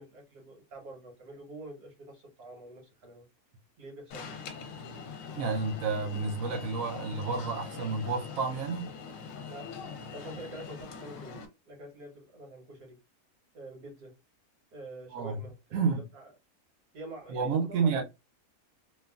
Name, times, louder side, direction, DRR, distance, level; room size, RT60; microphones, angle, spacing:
voice 1, 0.0-3.3 3.8-4.5 9.5-9.7 10.1-13.0 13.5-14.1 14.7-16.3 16.9-18.0, right 2 dB, 85° right, 1.7 m, -46 dB
Alarm, 4.1-11.5, left 5 dB, 70° left, 1.0 m, -43 dB
voice 2, 5.3-8.9 15.1-15.4 15.7-16.0 17.3-18.0, right 4 dB, 70° right, 0.9 m, -30 dB
3.1 x 2.3 x 2.3 m
omnidirectional pair, 1.6 m